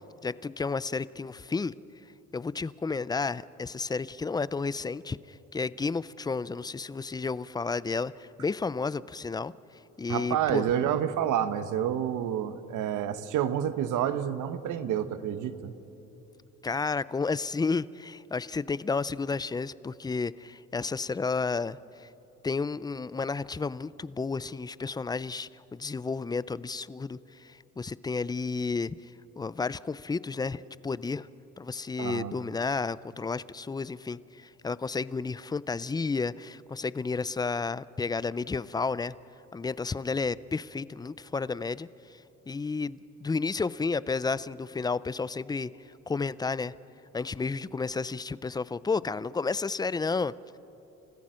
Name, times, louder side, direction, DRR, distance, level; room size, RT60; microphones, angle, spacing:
voice 1, 0.2-1.7 2.3-9.5 10.0-10.6 16.6-22.1 22.4-31.3 31.6-39.1 39.5-45.7 46.1-46.7 47.1-50.6, left 4 dB, 15° left, 19 dB, 0.4 m, -32 dB
voice 2, 10.1-15.7 32.0-32.3, right 10 dB, 85° right, 12 dB, 1.1 m, -29 dB
29.0 x 15.0 x 6.3 m, 3.0 s
cardioid pair, 90°, 30 cm